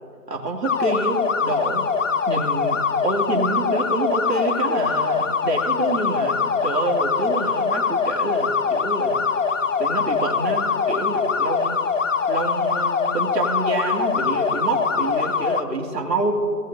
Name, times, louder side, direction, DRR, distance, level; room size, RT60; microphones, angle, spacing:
voice 1, 0.3-1.8 2.3-9.4 9.8-11.8 12.3-16.3, right 2 dB, 90° right, 0 dB, 2.4 m, -27 dB
sound 1, 0.6-15.6, left 5 dB, 55° left, 0.6 m, -23 dB
18.5 x 8.4 x 2.6 m, 2.5 s
hypercardioid pair, 170°, 47 cm